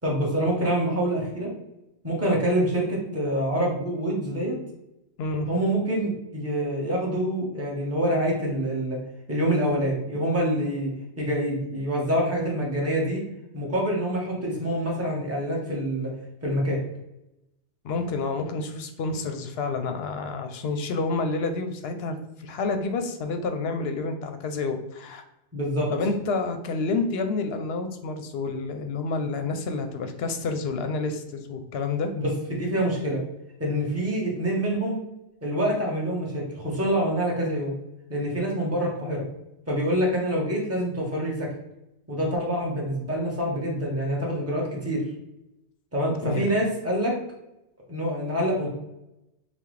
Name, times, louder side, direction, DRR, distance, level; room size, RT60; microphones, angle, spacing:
voice 1, 0.0-1.5 2.0-4.6 5.5-9.0 9.3-10.9 11.2-13.2 13.5-16.1 16.4-16.8 25.5-25.9 32.6-33.2 33.6-35.0 35.4-37.7 38.1-39.2 39.7-41.5 42.1-45.0 45.9-47.2 47.9-48.7, equal, 15° right, -3 dB, 1.0 m, -26 dB
voice 2, 5.2-5.5 17.8-25.2 25.9-32.1 46.2-46.5, left 3 dB, 65° left, 7 dB, 0.7 m, -29 dB
5.7 x 2.2 x 3.2 m, 0.90 s
omnidirectional pair, 1.2 m